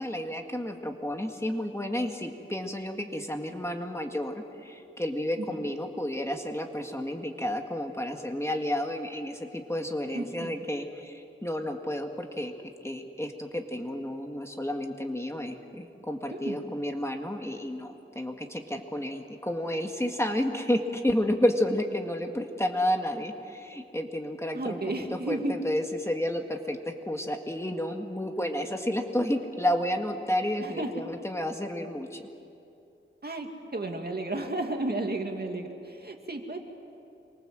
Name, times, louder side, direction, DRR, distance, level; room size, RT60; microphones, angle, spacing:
voice 1, 0.0-12.5 12.8-26.8 27.1-32.3, left 1 dB, 15° left, 3 dB, 1.9 m, -31 dB
voice 2, 10.1-10.6 16.3-16.6 24.5-25.5 30.6-30.9 33.2-36.6, right 2 dB, 50° right, 3 dB, 2.4 m, -33 dB
27.0 x 24.5 x 7.7 m, 2.7 s
wide cardioid pair, 80°, 21 cm